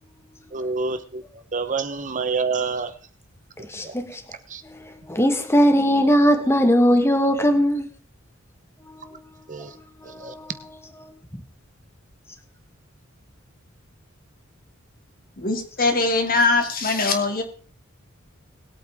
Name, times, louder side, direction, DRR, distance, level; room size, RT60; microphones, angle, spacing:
voice 1, 0.5-3.0 3.6-4.0 4.5-4.6 9.5-9.7 10.0-10.3, right 4 dB, 40° right, 1.0 m, -28 dB
voice 2, 3.7-4.2 4.6-7.9 8.9-9.2 10.0-10.5 11.1-11.2, equal, 15° left, 1.5 m, -20 dB
voice 3, 15.4-17.4, left 3 dB, 45° left, 2.6 m, -21 dB
21.0 x 8.5 x 3.6 m
head